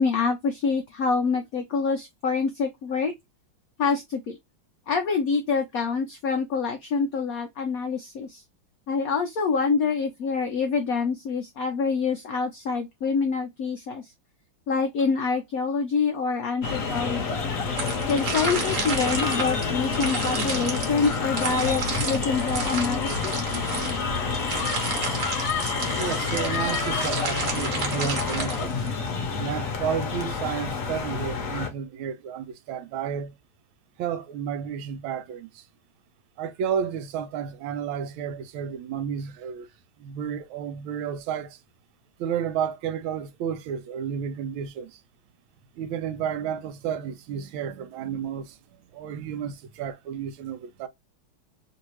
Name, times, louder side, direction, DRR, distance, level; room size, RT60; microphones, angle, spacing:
voice 1, 0.0-3.1 3.8-4.4 4.9-8.4 8.9-14.1 14.7-17.4 18.1-23.4, left 5 dB, 80° left, 0.7 m, -26 dB
sound 1, 16.6-31.7, left 5 dB, 55° left, 1.0 m, -28 dB
sound 2, 17.8-29.1, right 5 dB, 50° right, 1.0 m, -32 dB
voice 2, 26.0-28.8 29.4-33.4 34.0-35.6 36.4-39.7 40.0-41.6 42.2-45.0 45.8-48.6 48.9-50.9, right 8 dB, 85° right, 1.4 m, -31 dB
3.2 x 2.7 x 3.0 m
omnidirectional pair, 2.2 m